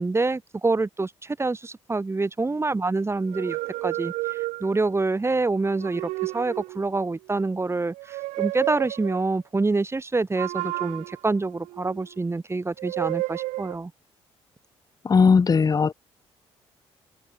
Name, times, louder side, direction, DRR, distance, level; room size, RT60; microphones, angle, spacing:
voice 1, 0.0-13.9, right 3 dB, 20° right, 1.9 m, -26 dB
sound 1, 3.2-5.0 5.7-7.0 7.9-9.3 10.4-12.2 12.8-13.8, right 20 dB, 85° right, 4.7 m, -31 dB
voice 2, 15.0-15.9, left 5 dB, 30° left, 0.8 m, -18 dB
supercardioid pair, 70°, 12 cm